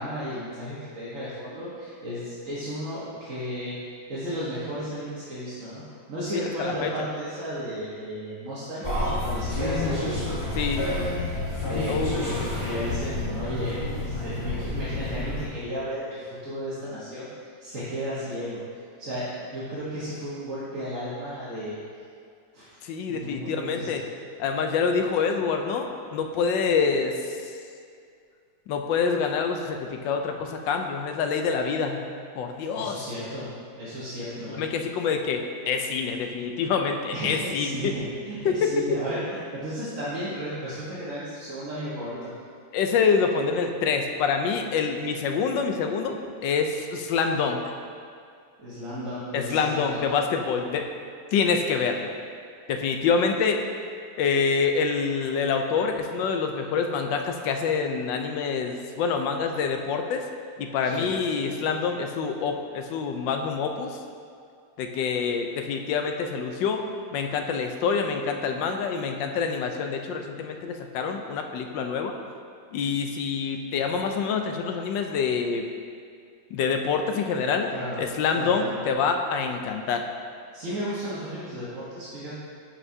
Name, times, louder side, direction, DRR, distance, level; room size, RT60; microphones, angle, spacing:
voice 1, 0.0-3.8 4.1-5.8 6.1-8.9 9.2-10.1 11.7-11.9 12.2-17.3 17.6-18.6 19.0-21.8 22.5-22.8 23.1-23.9 32.7-33.5 33.8-34.7 37.1-42.3 48.6-50.1 60.9-61.1 77.7-78.0 78.3-78.8 80.5-82.4, equal, 45° right, -11 dB, 1.6 m, -34 dB
voice 2, 6.3-6.9 10.5-10.9 11.9-12.3 22.8-24.0 24.4-27.5 28.7-32.0 32.4-33.0 34.5-37.9 38.4-38.7 42.7-47.6 49.3-50.8 51.3-52.1 52.7-53.6 54.2-60.2 60.6-64.0 64.8-66.8 67.1-72.1 72.7-75.7 76.5-77.7 78.0-80.1, left 5 dB, 75° left, 4 dB, 1.3 m, -26 dB
sound 1, 8.8-15.5, left 2 dB, 20° left, 1.5 m, -29 dB
10.5 x 5.9 x 2.7 m, 2.3 s
omnidirectional pair, 2.1 m